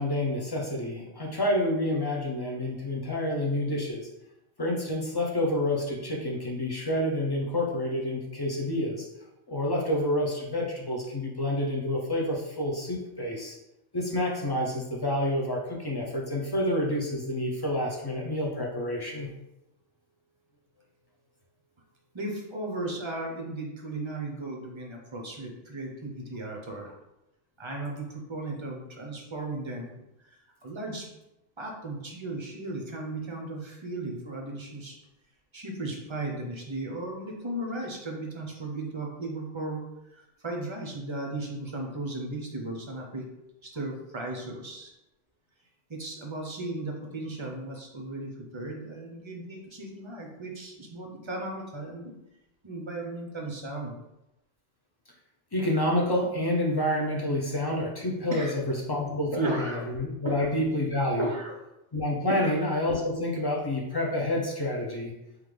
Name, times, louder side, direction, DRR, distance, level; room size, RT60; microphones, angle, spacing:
voice 1, 0.0-4.1 4.6-9.1 9.5-13.6 13.9-19.3 55.5-61.3 61.9-65.1, left 1 dB, 25° left, -2 dB, 0.6 m, -28 dB
voice 2, 22.1-26.9 27.6-30.0 30.2-30.4 30.6-31.1 31.6-35.0 35.5-43.2 43.7-44.9 45.9-52.1 52.6-54.0 58.3-58.5 59.3-59.8 60.2-60.5 61.2-61.6 62.2-62.5, right 2 dB, 30° right, 1 dB, 0.6 m, -36 dB
3.8 x 3.1 x 3.3 m, 0.91 s
omnidirectional pair, 1.1 m